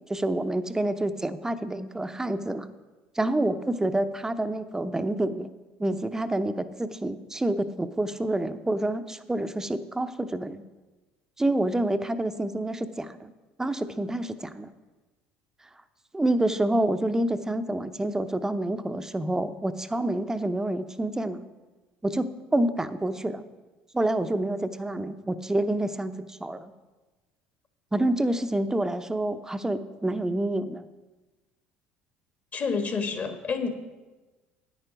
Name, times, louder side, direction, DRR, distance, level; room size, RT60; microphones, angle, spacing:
voice 1, 0.0-2.7 3.1-5.5 5.8-10.6 11.4-13.3 13.6-14.7 16.1-21.5 22.0-23.4 23.9-26.7 27.9-30.8, right 1 dB, 10° right, 10 dB, 0.7 m, -28 dB
voice 2, 32.5-33.7, left 5 dB, 40° left, 7 dB, 1.4 m, -28 dB
9.4 x 9.0 x 5.1 m, 1.2 s
hypercardioid pair, 75°, 4 cm